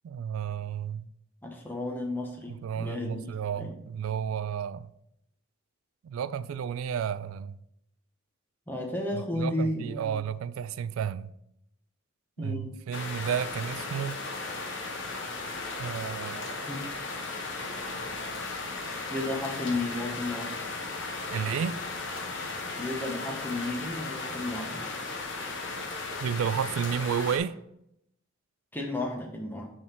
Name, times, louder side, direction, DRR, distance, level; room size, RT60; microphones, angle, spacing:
voice 1, 0.0-1.1 2.5-4.9 6.0-7.6 9.1-11.3 12.4-14.2 15.8-16.6 21.3-21.8 26.2-27.6, right 8 dB, 90° right, 0.3 m, -32 dB
voice 2, 1.4-3.8 8.7-10.1 12.4-12.7 16.7-16.8 19.1-20.5 22.8-24.9 28.7-29.7, left 2 dB, 10° left, 0.9 m, -33 dB
sound 1, 12.9-27.4, left 3 dB, 60° left, 1.0 m, -36 dB
6.2 x 3.7 x 4.3 m
head